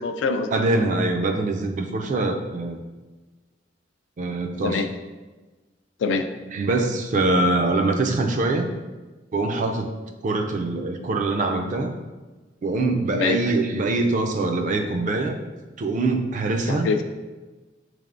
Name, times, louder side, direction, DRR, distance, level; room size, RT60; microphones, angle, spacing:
voice 1, 0.0-0.5 4.6-4.9 6.0-6.3 13.1-13.4 16.7-17.0, left 4 dB, 90° left, 7 dB, 0.3 m, -24 dB
voice 2, 0.5-2.8 4.2-4.8 6.5-8.7 9.3-9.9 10.2-11.9 12.6-15.4 15.8-16.9, right 2 dB, 45° right, 4 dB, 0.3 m, -23 dB
3.6 x 3.3 x 2.5 m, 1.2 s
head